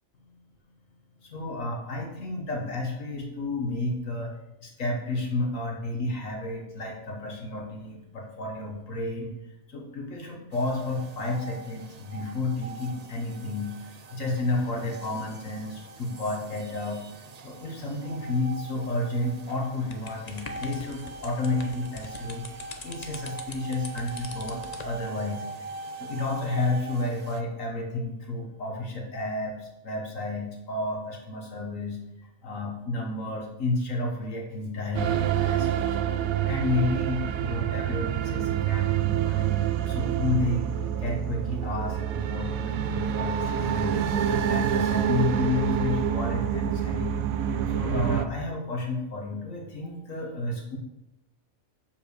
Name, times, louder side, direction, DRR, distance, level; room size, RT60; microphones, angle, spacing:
voice 1, 1.2-4.3 4.6-9.3 9.7-17.0 17.4-25.7 26.0-35.9 36.5-40.7 41.0-47.2 47.7-50.8, left 2 dB, 70° left, 1 dB, 1.8 m, -31 dB
sound 1, 10.5-27.4, right 4 dB, 50° right, 0.4 m, -42 dB
sound 2, 19.9-24.9, left 4 dB, 35° left, 0.8 m, -43 dB
sound 3, 34.9-48.2, right 9 dB, 85° right, 1.1 m, -27 dB
7.2 x 5.7 x 6.7 m, 0.92 s
omnidirectional pair, 1.4 m